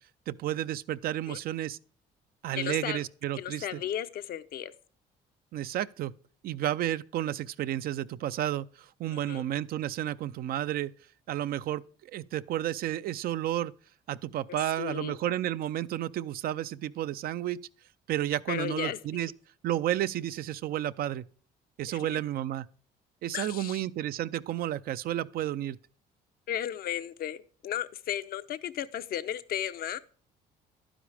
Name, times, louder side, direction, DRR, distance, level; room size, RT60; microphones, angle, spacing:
voice 1, 0.3-1.8 2.4-3.8 5.5-6.1 6.4-10.9 11.3-13.7 14.1-17.6 18.1-19.3 19.6-21.2 21.8-22.7 23.2-25.8, right 12 dB, 60° right, 0.5 m, -32 dB
voice 2, 2.6-3.0 3.4-4.7 9.1-9.4 14.8-15.2 18.5-19.0 21.9-22.0 23.3-23.8 26.5-30.0, left 11 dB, 60° left, 0.8 m, -34 dB
11.5 x 10.0 x 3.4 m
cardioid pair, 110°, 17 cm